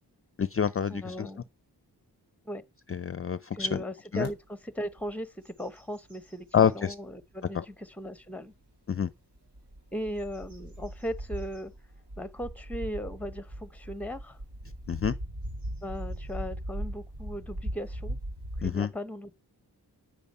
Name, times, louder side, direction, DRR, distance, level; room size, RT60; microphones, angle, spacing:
voice 1, 0.4-1.3 2.9-3.8 4.1-4.3 6.5-7.0 7.5-7.6 8.9-9.1 14.9-15.1 18.6-18.9, left 7 dB, 35° left, 0.5 m, -27 dB
voice 2, 0.9-1.4 2.4-2.6 3.5-8.5 9.9-11.7 12.2-14.4 15.8-18.2 18.6-19.3, equal, 5° left, 0.8 m, -37 dB
sound 1, 4.2-4.3 4.8-5.1 5.4-6.9 7.5-7.6 9.3-18.7, right 1 dB, 80° right, 4.5 m, -39 dB
8.9 x 7.0 x 5.4 m
wide cardioid pair, 75°, 40 cm